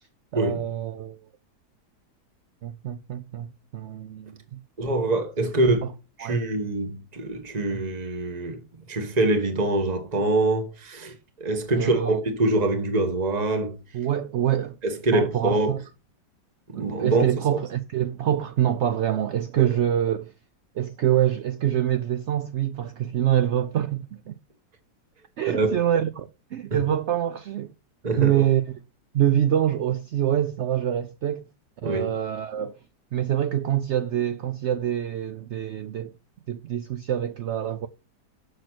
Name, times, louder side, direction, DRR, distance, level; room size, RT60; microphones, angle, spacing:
voice 1, 0.3-1.2 2.6-4.6 5.6-5.7 6.2-6.4 11.7-12.2 13.9-14.8 15.1-15.8 16.7-20.3 20.8-24.3 25.4-27.7 28.2-28.7 29.1-31.4 31.8-32.8 33.1-36.1 36.5-37.9, right 11 dB, 70° right, 0.6 m, -25 dB
voice 2, 4.8-5.8 6.2-13.8 14.8-15.7 16.7-17.2 17.5-17.6 25.5-25.8 26.7-26.8 28.0-28.5 31.8-32.1, right 2 dB, 25° right, 1.4 m, -25 dB
6.6 x 6.5 x 6.1 m
omnidirectional pair, 1.8 m